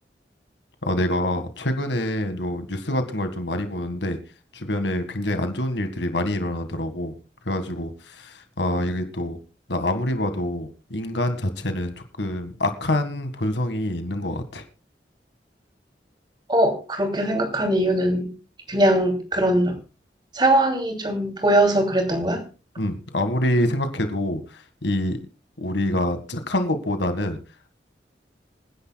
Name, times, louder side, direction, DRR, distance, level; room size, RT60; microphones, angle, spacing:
voice 1, 0.8-4.2 4.5-7.1 7.5-9.4 9.7-14.6 22.8-25.2 25.6-27.4, left 1 dB, 85° left, 8 dB, 1.8 m, -26 dB
voice 2, 16.5-18.3 18.7-19.7 20.3-22.4, right 1 dB, 25° right, 4 dB, 2.9 m, -21 dB
26.5 x 10.5 x 2.3 m, 0.31 s
head